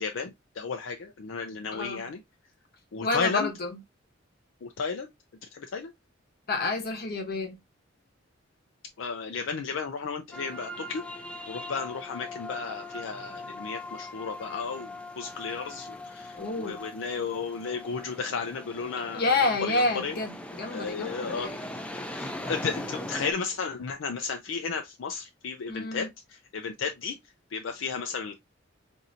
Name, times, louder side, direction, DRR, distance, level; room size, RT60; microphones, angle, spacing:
voice 1, 0.0-2.2 2.9-3.5 4.6-5.1 5.5-5.9 9.0-11.0 11.5-20.1 20.7-21.5 21.9-26.1 26.5-27.2 27.5-28.3, left 5 dB, 75° left, 0.4 m, -33 dB
voice 2, 1.7-2.1 3.0-3.8 6.5-7.6 16.3-16.8 19.1-21.6 25.7-26.1, left 3 dB, 50° left, 0.9 m, -29 dB
sound 1, 10.3-23.3, left 1 dB, 5° left, 0.4 m, -40 dB
4.2 x 2.7 x 2.6 m
head